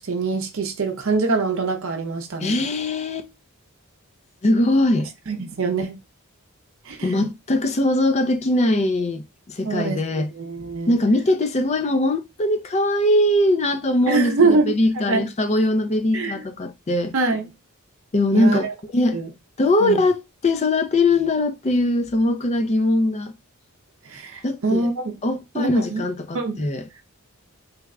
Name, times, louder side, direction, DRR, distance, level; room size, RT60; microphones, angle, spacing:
voice 1, 0.0-2.5 5.3-6.0 6.9-7.2 9.6-10.9 14.1-14.7 15.1-15.3 16.1-16.4 17.1-17.5 18.3-18.7 19.1-19.3 19.8-20.0 24.0-25.1 25.5-26.0 26.3-26.6, right 3 dB, 65° right, 0.6 m, -24 dB
voice 2, 2.4-3.3 4.4-5.1 7.0-10.3 10.9-17.1 18.1-18.7 18.9-19.2 19.6-23.3 24.4-24.9 25.2-26.8, left 1 dB, 30° left, 0.4 m, -21 dB
3.3 x 2.1 x 3.5 m
head